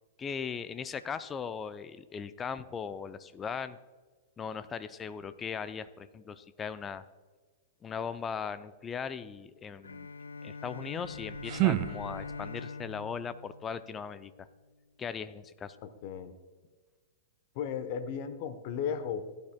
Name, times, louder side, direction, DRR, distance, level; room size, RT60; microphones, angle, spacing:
voice 1, 0.2-3.8 4.4-7.0 7.8-10.1 10.4-14.5 15.0-15.8, left 6 dB, 20° left, 13 dB, 0.5 m, -38 dB
Bowed string instrument, 9.8-14.5, left 4 dB, 80° left, 0.4 m, -43 dB
sound 1, 11.0-12.6, right 17 dB, 40° right, 0.3 m, -31 dB
voice 2, 15.8-16.3 17.5-19.2, left 7 dB, 45° left, 10 dB, 1.0 m, -35 dB
16.0 x 10.0 x 2.2 m, 1.4 s
figure-of-eight pair, 105°, 0 cm